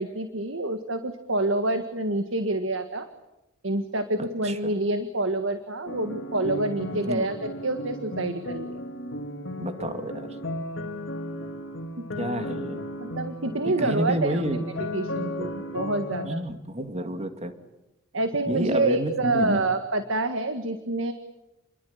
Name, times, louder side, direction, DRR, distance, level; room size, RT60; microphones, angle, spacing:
voice 1, 0.0-3.1 3.6-8.8 12.0-12.1 13.0-14.4 14.9-16.5 18.1-21.1, right 2 dB, 70° right, 8 dB, 1.9 m, -27 dB
voice 2, 4.4-4.8 6.9-7.3 9.6-10.3 12.2-12.9 13.6-14.6 16.2-17.5 18.5-19.6, right 1 dB, 35° right, 8 dB, 2.6 m, -29 dB
sound 1, 5.9-16.3, left 1 dB, 65° left, 2.5 m, -34 dB
29.5 x 22.5 x 8.8 m, 0.95 s
head